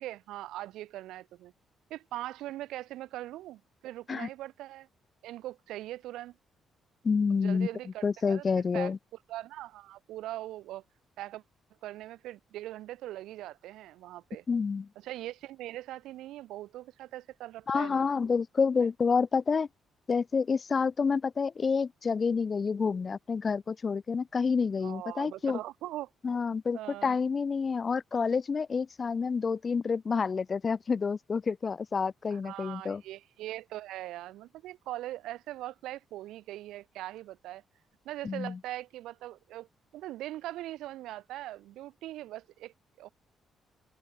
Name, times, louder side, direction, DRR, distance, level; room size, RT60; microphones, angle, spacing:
voice 1, 0.0-1.5 1.9-4.9 5.2-6.4 7.3-8.9 9.3-10.8 11.2-11.4 11.8-14.4 15.0-18.1 18.8-18.9 24.8-26.1 26.7-27.2 32.3-37.6 38.0-39.7 39.9-43.1, right 15 dB, 90° right, 1.2 m, -41 dB
voice 2, 7.0-7.7 8.0-9.0 14.5-14.9 17.7-19.7 20.1-25.6 26.2-33.0 38.2-38.6, left 5 dB, 40° left, 0.5 m, -28 dB
open air
cardioid pair, 90°, 0 cm